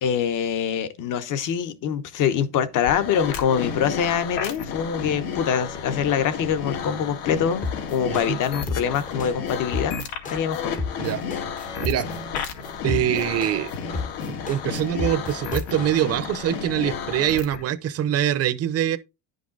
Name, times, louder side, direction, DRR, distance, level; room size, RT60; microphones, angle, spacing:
voice 1, 0.0-10.0 10.3-10.7, left 8 dB, 45° left, 1.1 m, -24 dB
sound 1, 2.8-17.6, left 6 dB, 75° left, 2.1 m, -32 dB
sound 2, 7.6-16.0, left 4 dB, 20° left, 0.7 m, -31 dB
voice 2, 8.1-8.4 11.0-11.2 11.8-12.1 12.8-13.7 14.3-19.0, right 11 dB, 35° right, 0.7 m, -24 dB
10.5 x 5.3 x 3.9 m
cardioid pair, 165°, 43 cm